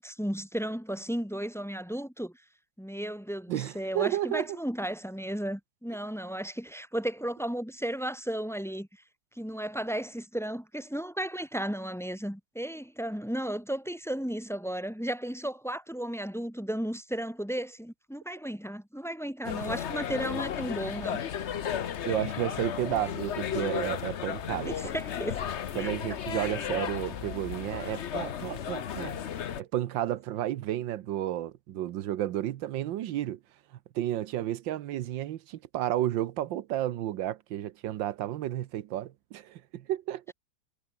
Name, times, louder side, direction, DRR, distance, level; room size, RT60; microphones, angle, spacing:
voice 1, 0.0-2.3 2.8-9.0 9.3-21.2 24.7-25.9 26.4-26.5 27.7-27.8, right 1 dB, ahead, 1.2 m, -34 dB
voice 2, 3.5-4.6 22.0-24.7 25.8-29.2 29.6-33.4 33.9-40.3, right 12 dB, 75° right, 1.5 m, -32 dB
sound 1, 19.4-29.6, left 9 dB, 55° left, 0.8 m, -34 dB
omnidirectional pair, 2.2 m